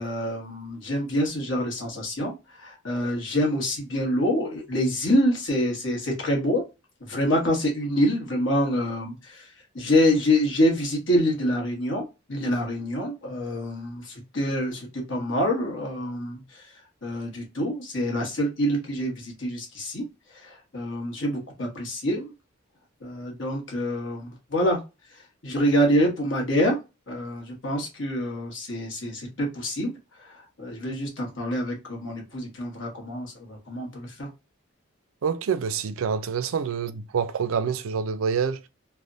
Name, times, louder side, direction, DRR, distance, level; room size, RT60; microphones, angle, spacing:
voice 1, 0.0-6.6 7.0-16.7 17.0-20.0 20.3-22.3 23.0-24.8 25.1-26.8 27.1-29.9 30.2-34.3, equal, 70° left, 1.2 m, -26 dB
voice 2, 35.2-38.7, right 6 dB, 85° right, 0.4 m, -27 dB
3.3 x 2.1 x 2.5 m
head